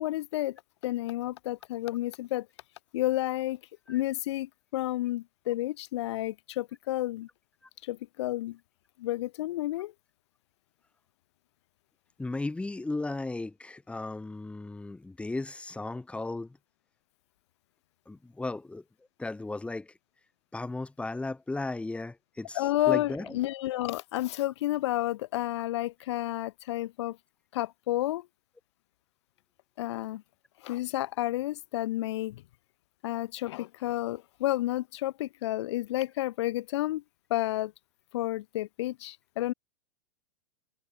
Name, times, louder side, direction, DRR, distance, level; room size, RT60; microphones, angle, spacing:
voice 1, 0.0-2.5 2.9-3.6 3.9-7.3 7.8-8.6 9.0-9.9 22.5-27.2 27.5-28.3 29.8-30.2 30.6-32.4 33.0-37.0 37.3-37.7 38.1-39.5, left 15 dB, 50° left, 6.0 m, -31 dB
voice 2, 12.2-16.5 18.1-18.8 19.2-19.9 20.5-23.3, left 2 dB, 5° left, 7.1 m, -35 dB
figure-of-eight pair, 100°, 18 cm